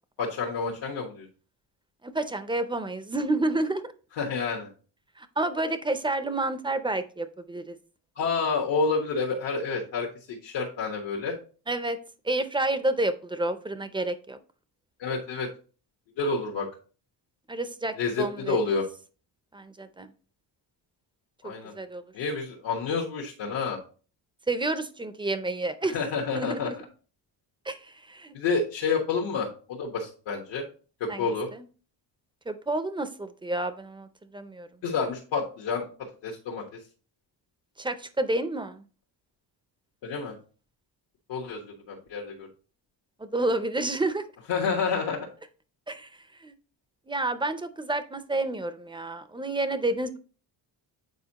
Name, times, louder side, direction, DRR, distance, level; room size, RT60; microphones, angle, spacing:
voice 1, 0.2-1.3 4.2-4.7 8.2-11.4 15.0-15.5 16.2-16.7 18.0-18.8 21.4-21.7 22.1-23.8 25.8-26.7 28.3-30.6 31.0-31.5 34.8-36.8 40.0-40.4 41.3-42.5 44.5-45.3, left 4 dB, 85° left, -2 dB, 1.3 m, -29 dB
voice 2, 2.0-3.9 5.2-7.8 11.7-12.0 12.2-14.4 17.5-18.6 19.5-20.1 21.4-22.0 24.5-26.0 26.3-26.8 27.6-28.3 31.1-31.6 32.5-34.7 37.8-38.8 43.2-44.2 45.9-46.1 46.4-46.5 47.1-50.2, right 2 dB, 10° right, 11 dB, 0.4 m, -30 dB
8.1 x 4.4 x 2.8 m, 0.37 s
cardioid pair, 135°, 43 cm